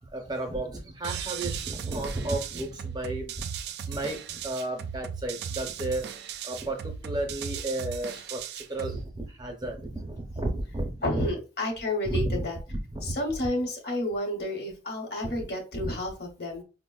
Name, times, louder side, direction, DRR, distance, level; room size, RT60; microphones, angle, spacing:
voice 1, 0.0-3.4 3.8-6.0 6.4-11.3 12.0-13.1, right 2 dB, 25° right, 3 dB, 0.6 m, -33 dB
sound 1, 1.0-9.0, right 7 dB, 70° right, 0.3 m, -37 dB
voice 2, 11.0-12.6 13.0-16.6, left 1 dB, 65° left, 2 dB, 0.9 m, -30 dB
4.9 x 2.0 x 2.3 m, 0.33 s
head